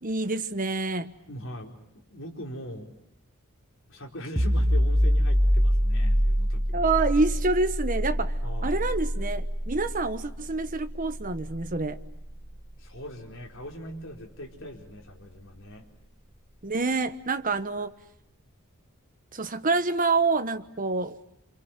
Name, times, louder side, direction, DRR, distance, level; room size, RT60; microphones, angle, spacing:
voice 1, 0.0-1.1 6.7-8.3 8.6-12.0 16.6-17.9 19.3-21.2, right 3 dB, 40° right, 9 dB, 1.3 m, -27 dB
voice 2, 1.3-1.7 2.1-3.0 3.9-6.9 8.4-8.7 12.8-15.8, equal, 65° left, 2 dB, 4.5 m, -41 dB
sound 1, 4.4-15.8, equal, 10° right, 1.7 m, -27 dB
28.5 x 26.5 x 7.5 m, 0.80 s
head